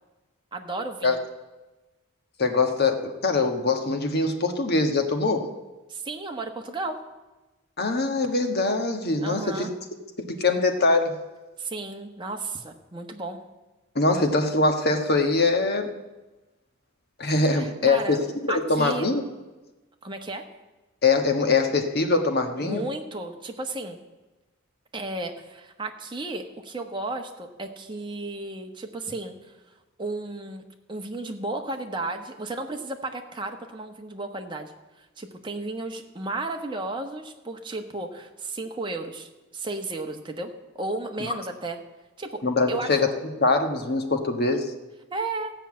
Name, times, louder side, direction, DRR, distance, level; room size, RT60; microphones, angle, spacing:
voice 1, 0.5-1.2 5.9-7.0 9.2-9.7 11.6-13.4 17.5-18.2 18.5-19.1 20.0-20.5 22.6-24.0 24.9-29.5 30.0-30.6 30.9-34.7 35.0-41.8 42.2-42.4 42.7-42.9 45.1-45.5, right 2 dB, 20° right, 3 dB, 1.2 m, -33 dB
voice 2, 2.4-5.5 7.8-9.7 10.2-11.2 13.9-15.9 17.2-19.2 21.0-22.8 42.4-43.1 43.4-44.7, left 3 dB, 50° left, 5 dB, 1.4 m, -23 dB
15.5 x 5.8 x 8.6 m, 1.1 s
head